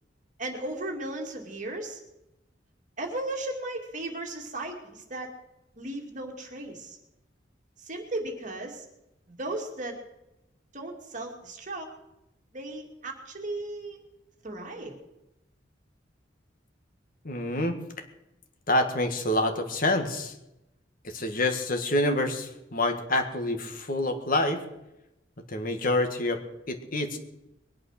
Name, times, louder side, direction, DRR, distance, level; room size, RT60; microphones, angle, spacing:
voice 1, 0.4-2.0 3.0-5.3 5.8-7.0 7.8-8.8 9.3-10.0 10.7-11.9 12.5-14.0 14.4-15.0, right 2 dB, 45° right, 2 dB, 2.5 m, -36 dB
voice 2, 17.2-17.8 18.7-20.3 21.0-24.6 25.5-26.4 26.7-27.2, left 1 dB, 50° left, 5 dB, 1.8 m, -27 dB
21.5 x 8.7 x 6.5 m, 0.91 s
head